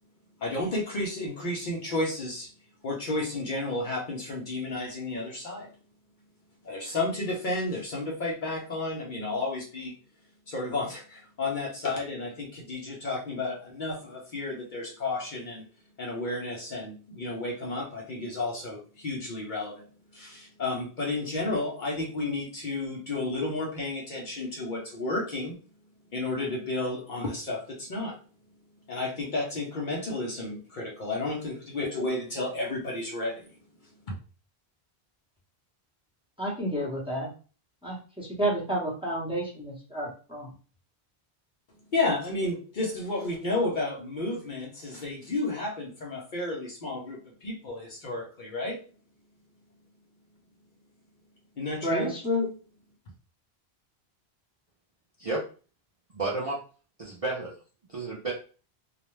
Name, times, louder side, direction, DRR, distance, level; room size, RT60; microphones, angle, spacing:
voice 1, 0.4-2.5 2.8-5.7 6.6-9.9 10.5-15.6 16.0-19.8 20.1-25.6 26.1-28.2 28.9-33.5 34.1-34.2 41.9-48.8 51.6-52.1, left 2 dB, 55° left, -2 dB, 0.7 m, -32 dB
voice 2, 36.4-37.3 37.8-40.5 51.8-52.5, equal, 5° right, -5 dB, 0.8 m, -30 dB
voice 3, 56.1-56.6 57.0-57.5 57.9-58.3, right 3 dB, 45° right, -4 dB, 0.5 m, -31 dB
2.3 x 2.1 x 3.0 m, 0.37 s
omnidirectional pair, 1.1 m